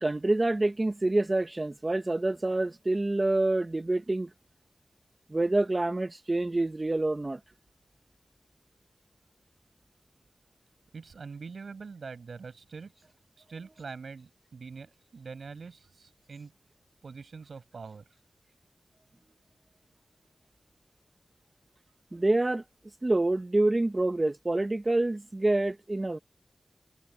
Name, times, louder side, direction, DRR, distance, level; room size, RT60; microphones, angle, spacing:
voice 1, 0.0-4.3 5.3-7.4 22.1-22.6 23.0-26.2, right 2 dB, 30° right, 1.5 m, -27 dB
voice 2, 10.9-12.9 13.4-16.5 17.0-18.0, right 5 dB, 80° right, 7.7 m, -44 dB
wide cardioid pair, 60°, 0 cm